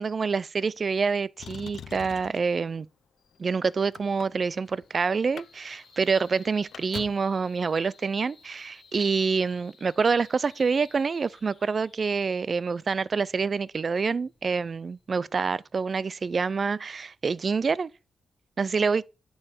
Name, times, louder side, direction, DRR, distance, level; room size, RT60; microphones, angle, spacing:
voice 1, 0.0-2.9 3.4-17.9 18.6-19.0, right 5 dB, 45° right, 0.3 m, -27 dB
Motor vehicle (road), 1.4-2.5 3.3-4.9 5.2-5.5 5.8-5.9 6.2-7.4 8.4-8.5, left 8 dB, 75° left, 0.3 m, -43 dB
sound 1, 3.2-15.8, left 4 dB, 55° left, 2.8 m, -58 dB
9.8 x 5.5 x 4.3 m
wide cardioid pair, 115°, 0 cm